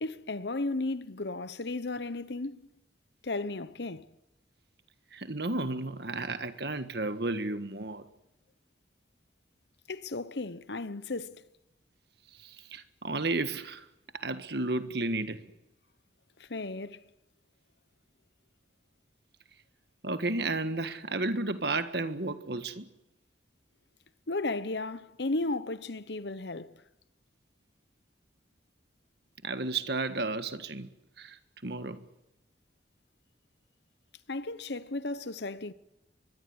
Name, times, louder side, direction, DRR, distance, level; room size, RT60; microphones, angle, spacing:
voice 1, 0.0-2.6 3.2-4.1 9.9-11.4 16.4-17.0 24.3-26.8 34.3-35.7, left 2 dB, 65° left, 1.0 m, -34 dB
voice 2, 5.1-8.0 12.3-13.9 14.1-15.5 20.0-22.9 29.4-30.9 31.2-32.1, right 2 dB, 60° right, 1.6 m, -33 dB
23.5 x 21.5 x 9.6 m
head